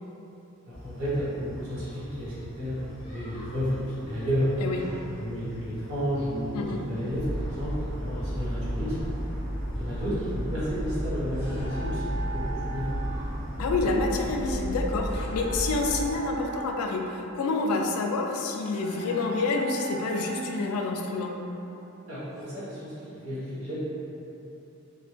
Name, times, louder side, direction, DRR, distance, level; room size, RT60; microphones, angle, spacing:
sound 1, 0.7-14.7, equal, 25° left, 0.7 m, -44 dB
voice 1, 0.7-4.6 5.2-9.0 9.8-12.9 22.1-23.8, equal, 75° right, -11 dB, 0.9 m, -32 dB
sound 2, 7.1-16.1, equal, 45° right, 0.8 m, -33 dB
sound 3, 10.9-22.4, right 4 dB, 15° right, 0.5 m, -41 dB
voice 2, 13.6-21.3, left 3 dB, 90° left, 7 dB, 0.3 m, -28 dB
2.2 x 2.0 x 3.1 m, 2.9 s
head